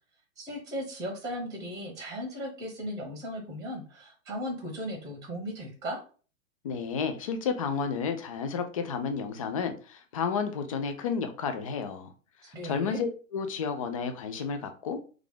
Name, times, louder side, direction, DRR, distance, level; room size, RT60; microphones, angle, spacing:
voice 1, 0.4-6.0 12.4-13.0, equal, 10° right, 0.9 m, -37 dB
voice 2, 6.6-12.1 12.6-15.0, left 6 dB, 30° left, 0.3 m, -31 dB
3.1 x 2.4 x 3.6 m
figure-of-eight pair, 120°, 41 cm